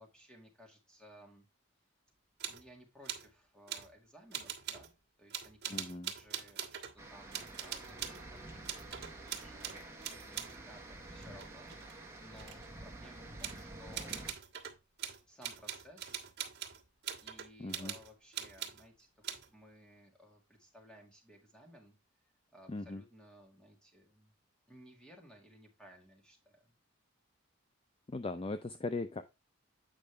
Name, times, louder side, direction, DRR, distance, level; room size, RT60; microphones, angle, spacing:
voice 1, 0.0-1.5 2.5-9.9 10.2-14.3 15.3-16.3 17.2-22.0 22.5-24.3 24.7-26.7 28.6-28.8, equal, 5° left, 1.9 m, -58 dB
sound 1, 2.4-2.7 3.1-3.3 3.7-3.9 4.3-4.9 5.3-7.0 7.3-8.2 8.7-10.6 11.2-12.7 13.4-13.6 13.9-18.8 19.2-19.5, right 9 dB, 50° right, 1.5 m, -42 dB
voice 2, 5.7-6.1 17.6-17.9 22.7-23.0 28.1-29.2, left 3 dB, 25° left, 0.4 m, -39 dB
sound 2, 7.0-14.3, right 2 dB, 10° right, 1.3 m, -49 dB
8.6 x 5.2 x 3.3 m
head